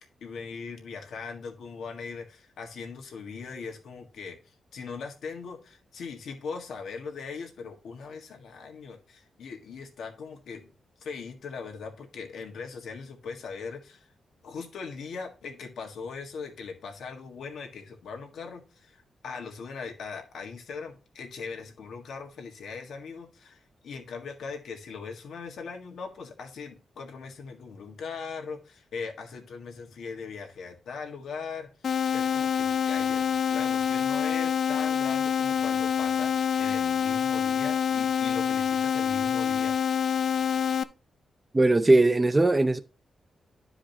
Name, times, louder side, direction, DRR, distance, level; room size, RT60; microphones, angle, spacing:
voice 1, 0.2-4.4 4.7-10.7 11.0-14.1 14.4-31.7 32.1-39.7, left 5 dB, 80° left, 1.6 m, -40 dB
sound 1, 31.8-40.8, left 8 dB, 60° left, 0.4 m, -26 dB
voice 2, 41.5-42.8, right 2 dB, 15° right, 0.5 m, -20 dB
12.0 x 4.9 x 2.9 m
wide cardioid pair, 125°, 0 cm